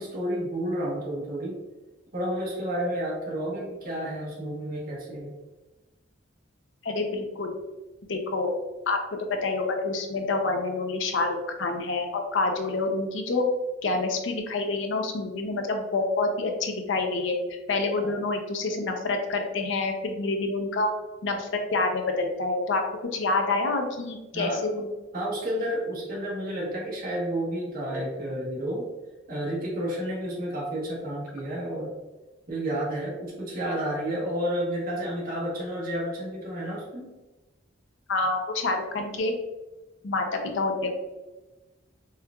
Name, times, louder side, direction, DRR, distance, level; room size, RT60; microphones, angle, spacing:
voice 1, 0.0-1.6 2.1-5.3 18.0-18.1 24.3-24.7 25.1-28.9 29.3-31.9 32.5-37.1, right 1 dB, 45° right, -4 dB, 1.1 m, -31 dB
voice 2, 6.8-7.6 8.1-8.5 8.9-9.0 9.3-13.4 13.8-17.4 17.7-20.9 21.2-22.8 23.1-24.9 38.1-39.3 40.0-40.3 40.5-40.9, left 3 dB, 65° left, 4 dB, 0.5 m, -27 dB
4.3 x 2.3 x 2.3 m, 1.1 s
head